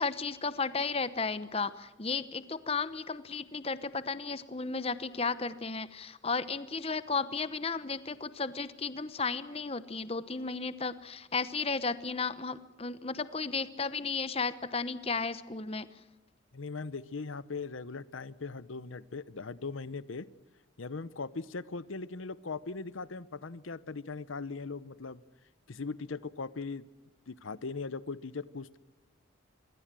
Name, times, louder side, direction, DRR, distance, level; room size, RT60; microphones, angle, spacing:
voice 1, 0.0-15.9, left 4 dB, 30° left, 14 dB, 0.9 m, -34 dB
voice 2, 16.5-20.3 20.8-25.2 25.7-26.9 27.3-28.8, left 4 dB, 85° left, 17 dB, 0.8 m, -39 dB
26.0 x 23.0 x 7.6 m, 1.0 s
head